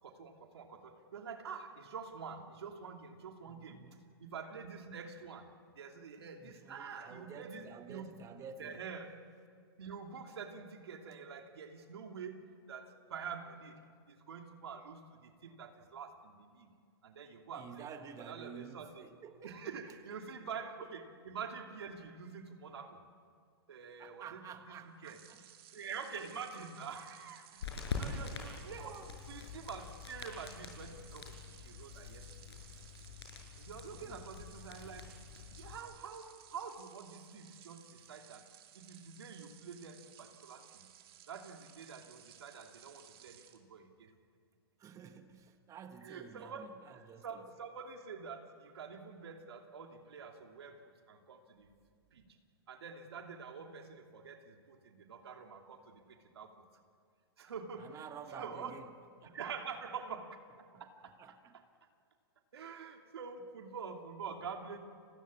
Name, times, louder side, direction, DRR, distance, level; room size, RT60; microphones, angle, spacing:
voice 1, 0.0-3.8 4.2-8.1 8.6-9.1 9.8-13.8 14.1-16.7 17.0-17.9 18.2-19.1 19.4-23.1 23.7-24.4 24.7-25.2 25.7-29.0 29.3-32.6 33.6-35.1 35.5-38.5 38.7-40.9 41.3-44.1 46.0-51.7 52.1-52.4 52.7-56.6 57.4-58.8 59.3-60.4 60.8-61.6 62.5-64.8, right 6 dB, 85° right, 4 dB, 2.8 m, -47 dB
voice 2, 3.5-4.0 6.4-8.7 17.5-19.6 19.9-20.0 20.8-20.9 24.0-25.4 27.9-28.2 28.8-29.1 33.9-34.2 44.8-47.4 57.8-58.9 59.2-59.8 60.7-60.8 61.2-61.5, right 7 dB, 25° right, 7 dB, 1.6 m, -51 dB
sound 1, 25.0-43.6, right 11 dB, 70° right, 2.8 m, -59 dB
sound 2, 27.6-35.8, left 5 dB, 85° left, 6.3 m, -45 dB
30.0 x 22.0 x 8.5 m, 2.2 s
hypercardioid pair, 130°, 13 cm